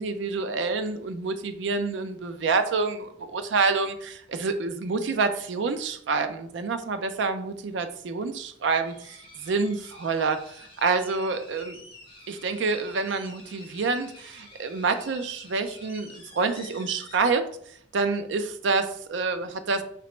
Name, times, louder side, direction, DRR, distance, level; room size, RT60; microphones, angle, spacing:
voice 1, 0.0-8.9 9.4-11.8 12.3-17.4 17.9-19.8, right 4 dB, 75° right, 8 dB, 0.4 m, -27 dB
sound 1, 8.8-17.2, left 2 dB, 30° left, 1.1 m, -49 dB
4.5 x 2.9 x 3.1 m, 0.65 s
head